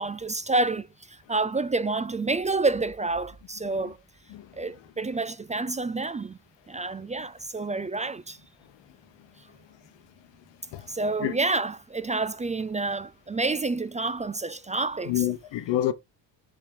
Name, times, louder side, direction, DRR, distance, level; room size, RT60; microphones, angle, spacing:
voice 1, 0.0-4.0 4.6-6.4 6.7-8.4 10.9-15.3, right 3 dB, 20° right, 0.4 m, -28 dB
voice 2, 15.1-15.9, left 13 dB, 90° left, 1.1 m, -27 dB
7.4 x 3.8 x 3.8 m
cardioid pair, 90°, 42 cm